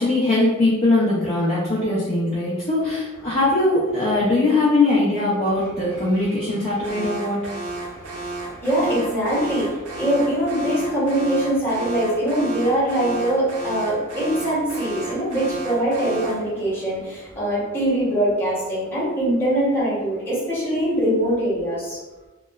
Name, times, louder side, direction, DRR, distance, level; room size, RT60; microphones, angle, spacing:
voice 1, 0.0-7.4, left 2 dB, 30° left, -8 dB, 0.4 m, -21 dB
voice 2, 5.9-6.3 7.6-22.0, right 1 dB, 10° left, -9 dB, 0.9 m, -23 dB
Alarm, 6.8-16.5, right 2 dB, 90° right, 0.5 m, -33 dB
2.8 x 2.1 x 2.3 m, 1.1 s
head